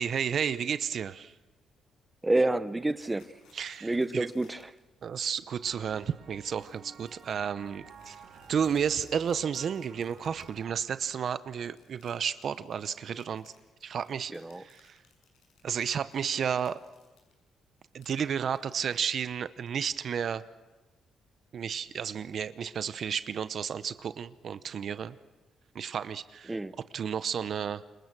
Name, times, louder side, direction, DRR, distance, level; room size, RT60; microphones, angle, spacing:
voice 1, 0.0-1.3 3.5-4.3 5.0-8.2 8.5-13.5 13.8-15.0 15.6-16.8 17.9-20.4 21.5-25.2 25.7-26.6 26.9-27.8, right 7 dB, 55° right, 14 dB, 0.8 m, -32 dB
voice 2, 2.2-3.3 3.8-4.6 14.3-14.6 26.5-26.7, right 2 dB, 15° right, 14 dB, 0.8 m, -28 dB
sound 1, 3.0-4.8 5.2-5.3 5.6-5.9 6.5-11.0 11.3-17.3 17.6-19.3, left 5 dB, 85° left, 7.0 m, -63 dB
sound 2, 5.6-10.8, right 6 dB, 75° right, 3.9 m, -52 dB
27.5 x 23.0 x 6.2 m, 1.2 s
cardioid pair, 90°, 0 cm